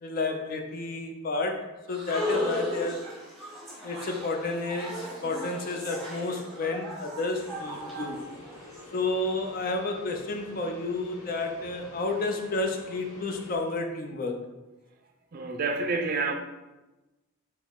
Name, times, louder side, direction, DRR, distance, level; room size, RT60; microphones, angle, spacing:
voice 1, 0.0-3.0 3.8-8.2 8.9-14.4, left 2 dB, 45° left, 4 dB, 0.5 m, -31 dB
sound 1, 1.9-8.8, left 1 dB, ahead, 1.0 m, -36 dB
sound 2, 7.4-13.6, left 2 dB, 80° left, 1.2 m, -47 dB
voice 2, 15.3-16.3, right 3 dB, 45° right, 5 dB, 0.4 m, -28 dB
4.5 x 2.9 x 3.5 m, 1.1 s
head